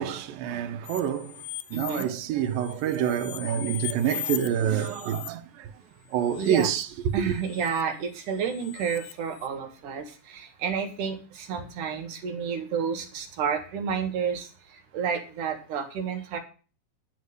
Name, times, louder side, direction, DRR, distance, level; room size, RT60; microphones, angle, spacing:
voice 1, 0.0-1.4 1.7-5.7 6.1-6.9 7.3-7.4, right 9 dB, 90° right, 2.7 m, -27 dB
sound 1, 0.8-2.1 2.5-5.3 6.2-6.8 7.2-7.8 8.4-9.5, left 14 dB, 80° left, 2.3 m, -39 dB
voice 2, 1.7-2.1 6.3-6.7 7.1-14.5 14.9-16.4, right 6 dB, 65° right, 3.1 m, -30 dB
11.0 x 6.6 x 8.0 m
omnidirectional pair, 3.9 m